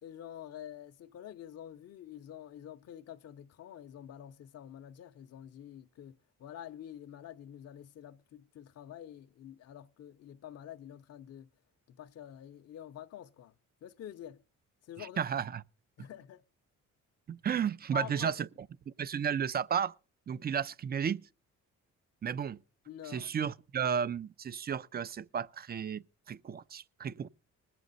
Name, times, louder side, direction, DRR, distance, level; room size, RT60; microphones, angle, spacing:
voice 1, 0.0-11.5 11.9-13.5 13.8-14.4 14.8-15.2 16.0-16.4 17.9-18.3 22.9-23.3, left 10 dB, 55° left, 0.6 m, -47 dB
voice 2, 15.0-15.6 16.0-16.1 17.3-18.5 18.9-19.9 20.3-21.3 22.2-22.6 23.1-27.3, right 7 dB, 30° right, 0.5 m, -33 dB
20.5 x 7.6 x 4.0 m
cardioid pair, 90°, 30 cm